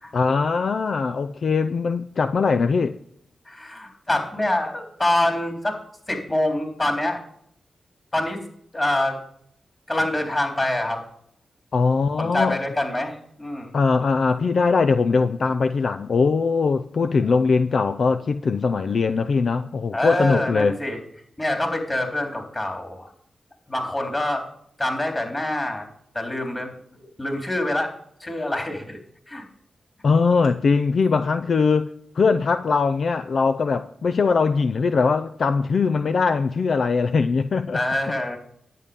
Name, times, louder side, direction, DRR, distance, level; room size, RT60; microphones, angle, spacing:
voice 1, 0.1-3.0 11.7-12.6 13.7-20.7 30.0-31.9 32.1-37.8, left 4 dB, 65° left, 0.5 m, -21 dB
voice 2, 3.5-5.8 6.1-7.2 8.1-8.4 8.7-9.2 9.9-11.0 12.2-13.8 19.9-21.0 21.4-23.1 23.7-24.4 24.8-25.9 26.1-27.9 28.2-29.0 29.3-29.4 37.7-38.4, left 1 dB, 30° left, 3.7 m, -25 dB
11.0 x 8.5 x 5.3 m
cardioid pair, 50°, 0 cm